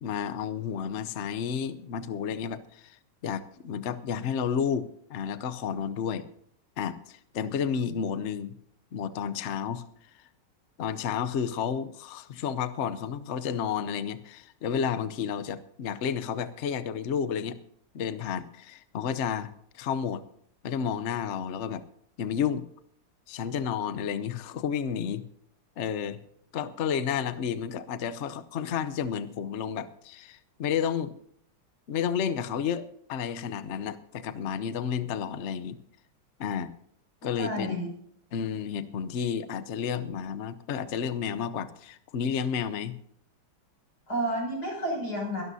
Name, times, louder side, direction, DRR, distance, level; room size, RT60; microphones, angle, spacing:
voice 1, 0.0-6.2 6.8-8.5 8.9-9.8 10.8-17.6 17.9-20.2 20.6-21.8 22.2-22.6 23.3-25.2 25.8-26.2 26.5-31.1 31.9-35.8 36.4-36.7 37.2-37.8 38.3-43.0, left 7 dB, 85° left, 13 dB, 0.6 m, -31 dB
voice 2, 37.2-37.9 44.1-45.4, right 1 dB, 45° left, 0 dB, 7.2 m, -31 dB
22.0 x 12.5 x 2.8 m, 0.68 s
omnidirectional pair, 2.3 m